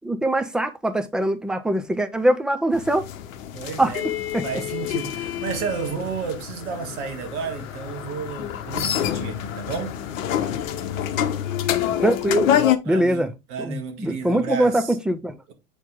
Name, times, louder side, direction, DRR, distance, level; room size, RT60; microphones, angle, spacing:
voice 1, 0.0-3.0 3.8-3.9 4.3-4.4 12.0-12.5 12.9-13.3 13.6-15.3, right 1 dB, ahead, 0.5 m, -22 dB
sound 1, 2.7-12.8, left 10 dB, 60° left, 1.0 m, -27 dB
voice 2, 3.5-4.0 4.4-10.0 12.8-15.0, right 6 dB, 50° right, 2.0 m, -32 dB
7.9 x 4.5 x 3.6 m
figure-of-eight pair, 85°, 45 cm